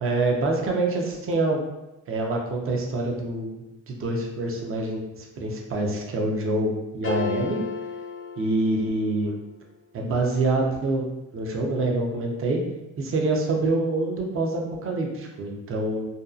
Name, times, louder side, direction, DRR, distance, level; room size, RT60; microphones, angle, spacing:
voice 1, 0.0-1.6 2.1-3.6 3.9-7.6 8.4-9.3 9.9-11.1 11.3-12.6 13.0-16.1, right 2 dB, 45° right, 1 dB, 0.6 m, -26 dB
sound 1, 7.0-9.3, left 7 dB, 45° left, 0.4 m, -32 dB
2.6 x 2.3 x 2.3 m, 0.98 s
cardioid pair, 90°, 30 cm